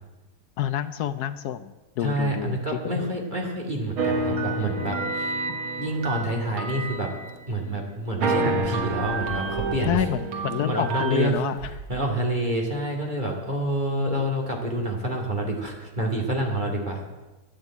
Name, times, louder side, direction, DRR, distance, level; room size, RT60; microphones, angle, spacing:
voice 1, 0.6-3.1 9.8-11.7, left 10 dB, 80° left, 12 dB, 0.9 m, -28 dB
voice 2, 2.0-5.3 5.8-7.1 7.5-10.0 10.7-11.3 11.9-17.0, right 1 dB, 25° right, 0 dB, 2.3 m, -27 dB
sound 1, 4.0-7.8 8.2-11.3, right 3 dB, 85° right, 2.3 m, -29 dB
sound 2, 6.7-6.8 7.3-7.4 8.2-8.3 8.6-10.1 10.5-10.6 11.3-12.1 12.7-12.8 13.3-13.4, right 6 dB, 60° right, 0.8 m, -39 dB
12.0 x 9.0 x 8.3 m, 1.1 s
omnidirectional pair, 2.2 m